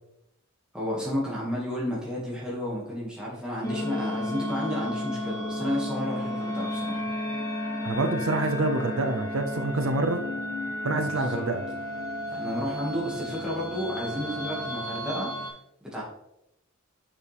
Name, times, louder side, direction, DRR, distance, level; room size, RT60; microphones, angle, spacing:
voice 1, 0.7-7.0 10.8-11.4 12.3-15.3 15.9-16.0, equal, 5° right, -6 dB, 1.9 m, -32 dB
sound 1, 3.6-15.5, left 1 dB, 15° left, 2.8 m, -33 dB
voice 2, 7.8-10.2 10.8-11.6, right 2 dB, 70° right, 7 dB, 0.6 m, -27 dB
7.3 x 6.8 x 3.4 m, 0.82 s
head